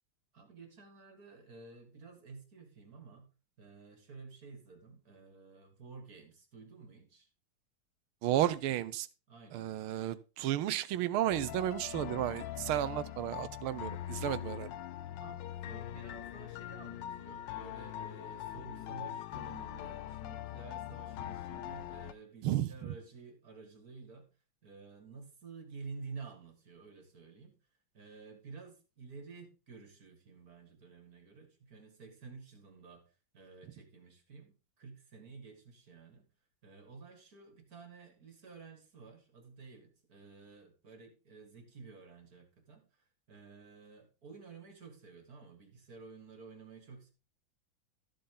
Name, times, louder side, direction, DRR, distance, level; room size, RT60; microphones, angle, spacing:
voice 1, 0.3-3.3 3.6-7.3 9.3-9.7 15.2-24.3 24.6-27.6 27.9-33.0 33.3-36.3 36.6-42.8 43.3-47.1, right 4 dB, 45° right, 5 dB, 2.6 m, -52 dB
voice 2, 8.2-9.1 9.5-14.7 22.4-22.9, right 13 dB, 90° right, 17 dB, 1.6 m, -33 dB
sound 1, 11.3-22.1, left 12 dB, 70° left, 1.2 m, -42 dB
13.5 x 7.8 x 3.9 m, 0.32 s
omnidirectional pair, 2.3 m